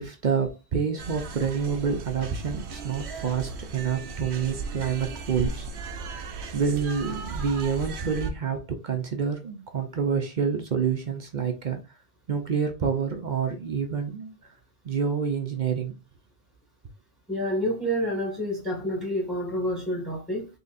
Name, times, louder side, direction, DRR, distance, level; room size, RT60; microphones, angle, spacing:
voice 1, 0.0-5.7 6.5-11.8 12.3-14.3 14.8-15.9, right 6 dB, 50° right, 0.7 m, -28 dB
sound 1, 1.0-8.3, right 3 dB, 80° right, 0.9 m, -36 dB
voice 2, 17.3-20.5, equal, ahead, 1.7 m, -28 dB
4.1 x 3.8 x 2.5 m
omnidirectional pair, 1.1 m